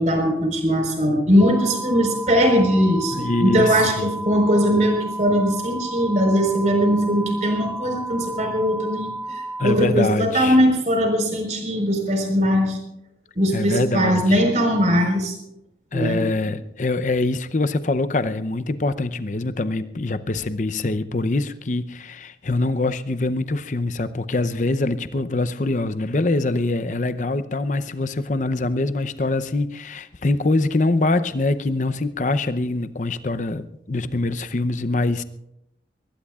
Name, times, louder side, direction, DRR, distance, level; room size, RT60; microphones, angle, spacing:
voice 1, 0.0-12.8 13.3-15.4 15.9-16.2, equal, 45° right, 3 dB, 4.5 m, -20 dB
sound 1, 1.4-9.7, right 2 dB, 5° right, 2.8 m, -32 dB
voice 2, 3.1-4.1 9.3-10.6 13.5-14.4 15.9-35.2, left 2 dB, 45° left, 12 dB, 0.7 m, -24 dB
22.0 x 19.5 x 2.4 m, 0.81 s
head